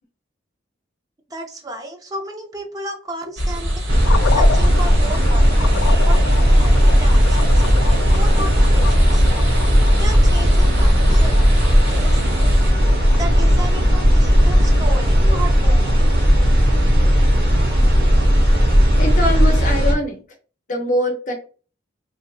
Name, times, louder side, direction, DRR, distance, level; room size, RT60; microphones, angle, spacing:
voice 1, 1.3-7.6 8.1-9.2 9.9-12.2 13.1-16.1, right 1 dB, 20° right, 3 dB, 0.4 m, -33 dB
sound 1, 3.4-12.7, equal, 80° right, 1.1 m, -24 dB
sound 2, 3.9-19.9, equal, 55° right, 0.9 m, -15 dB
sound 3, 4.0-16.3, left 6 dB, 85° left, 0.3 m, -32 dB
voice 2, 19.0-20.2 20.7-21.3, equal, 40° left, 2 dB, 0.7 m, -23 dB
2.7 x 2.5 x 2.4 m, 0.37 s
head